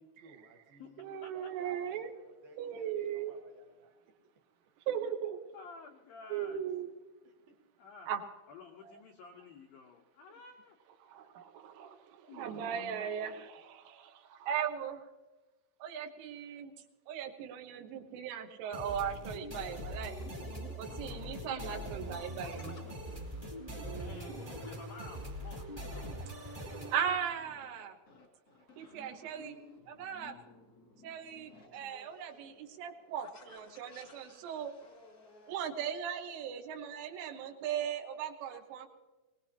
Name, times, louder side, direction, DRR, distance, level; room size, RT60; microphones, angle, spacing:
voice 1, 0.0-3.9 7.2-7.6, right 3 dB, 70° right, 2 dB, 2.3 m, -58 dB
voice 2, 1.0-2.1 2.6-3.3 4.9-5.4 6.3-6.9 8.1-8.2 8.8-8.9 11.1-12.0 12.3-15.0 15.8-16.7 17.1-20.2 20.8-22.9 23.8-24.5 26.5-28.0 28.8-29.6 29.9-30.4 31.0-34.7 35.5-38.9, right 8 dB, 90° right, 3 dB, 3.8 m, -38 dB
voice 3, 5.5-6.6 7.8-8.1 8.5-10.8 12.3-13.0 24.0-26.3, left 4 dB, 80° left, 2 dB, 2.1 m, -52 dB
sound 1, 18.7-27.1, equal, 20° right, 1.1 m, -42 dB
sound 2, 20.2-35.6, left 2 dB, 45° left, 1.2 m, -56 dB
23.0 x 19.0 x 2.8 m, 1.2 s
omnidirectional pair, 5.5 m